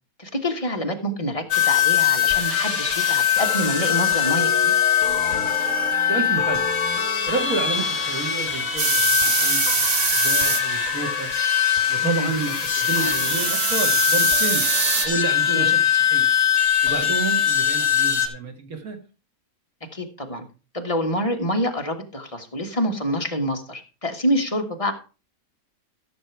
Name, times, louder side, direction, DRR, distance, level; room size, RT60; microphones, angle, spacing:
voice 1, 0.2-4.7 12.0-12.3 15.5-15.7 19.9-20.4 20.7-24.9, equal, 25° left, 3 dB, 1.7 m, -26 dB
sound 1, 1.5-18.3, left 8 dB, 60° left, 2.0 m, -22 dB
voice 2, 6.0-6.6 7.3-11.3 11.9-14.7 15.0-16.3 16.8-19.0, right 4 dB, 80° right, 4 dB, 2.4 m, -30 dB
sound 2, 8.8-10.6 12.4-15.1, right 5 dB, 45° right, 1.3 m, -23 dB
14.0 x 6.6 x 4.6 m, 0.32 s
omnidirectional pair, 1.5 m